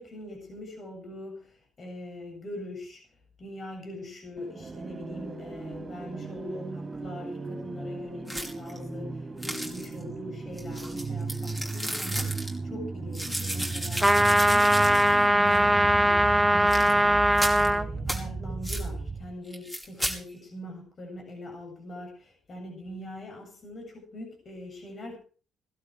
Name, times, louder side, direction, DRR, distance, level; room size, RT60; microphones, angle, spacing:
voice 1, 0.0-25.2, left 1 dB, 45° left, 2 dB, 7.6 m, -42 dB
sound 1, 4.4-19.3, right 3 dB, 30° right, 3.7 m, -36 dB
sound 2, 8.3-8.8 9.4-10.0 10.6-12.5 13.1-15.2 15.5-15.6 16.6-16.9 17.4-17.7 18.1-18.2 18.6-18.9 19.5-20.2, equal, 10° left, 5.3 m, -34 dB
sound 3, 14.0-17.9, right 1 dB, 10° right, 1.5 m, -21 dB
19.5 x 12.5 x 4.8 m, 0.42 s
supercardioid pair, 60°, 0 cm